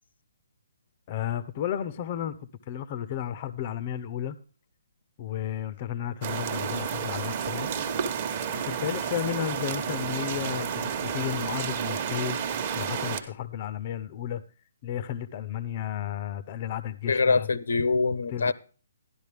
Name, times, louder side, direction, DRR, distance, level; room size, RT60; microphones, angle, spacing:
voice 1, 1.1-4.4 5.2-7.7 8.5-12.4 12.8-14.4 14.8-17.5 18.3-18.5, left 10 dB, 25° left, 0.6 m, -33 dB
sound 1, 6.2-13.2, right 7 dB, 30° right, 1.1 m, -31 dB
voice 2, 17.1-18.5, left 4 dB, 90° left, 0.9 m, -24 dB
12.5 x 11.0 x 3.4 m
hypercardioid pair, 175°, 0 cm